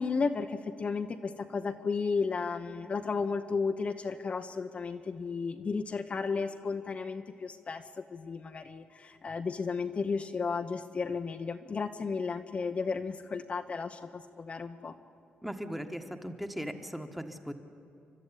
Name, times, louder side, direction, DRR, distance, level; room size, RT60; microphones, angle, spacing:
voice 1, 0.0-14.9, left 4 dB, 35° left, 6 dB, 0.9 m, -33 dB
voice 2, 15.4-17.5, equal, 5° right, 6 dB, 1.4 m, -38 dB
29.0 x 12.5 x 9.9 m, 2.8 s
cardioid pair, 120°, 4 cm